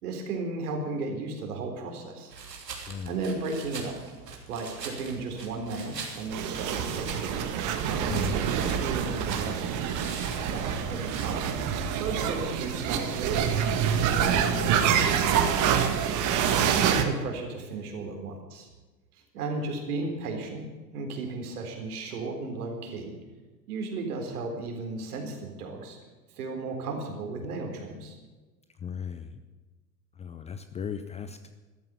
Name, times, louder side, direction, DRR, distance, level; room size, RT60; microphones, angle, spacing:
voice 1, 0.0-2.3 2.8-4.0 4.5-7.4 7.9-9.7 10.5-11.6 12.0-16.3 16.7-18.7 19.1-20.6 20.9-23.1 23.7-26.0 26.3-28.2, right 3 dB, 60° right, 3 dB, 4.0 m, -35 dB
sound 1, 2.3-11.3, right 5 dB, 80° right, 3.2 m, -43 dB
sound 2, 6.3-17.0, right 8 dB, 35° right, 1.7 m, -26 dB
voice 2, 28.8-29.4 30.2-31.5, left 7 dB, 15° left, 9 dB, 0.5 m, -36 dB
14.0 x 12.5 x 7.1 m, 1.3 s
figure-of-eight pair, 90°, 49 cm